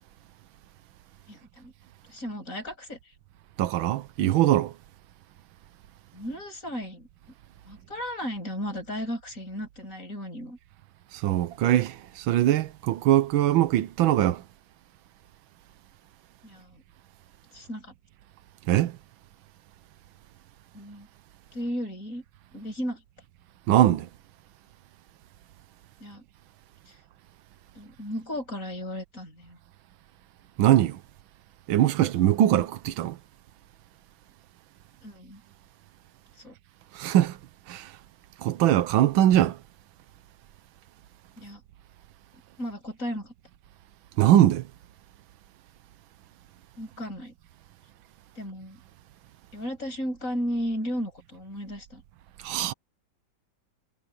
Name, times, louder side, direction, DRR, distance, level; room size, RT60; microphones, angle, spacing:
voice 1, 1.3-1.7 2.1-3.0 6.1-7.1 7.7-10.6 16.4-16.8 17.5-17.9 20.7-21.1 21.5-22.2 22.5-23.0 26.0-26.2 26.9-27.0 27.8-29.6 35.0-35.4 36.4-36.6 41.4-41.6 42.6-43.3 46.8-47.3 48.4-48.8 49.5-52.0, equal, 40° left, 8.6 m, -34 dB
voice 2, 3.6-4.7 11.1-14.4 18.7-18.9 23.7-24.1 30.6-31.0 31.7-33.2 36.9-37.4 37.7-37.9 38.4-39.6 44.2-44.6 52.4-52.7, right 12 dB, 90° right, 1.6 m, -21 dB
omnidirectional pair, 2.1 m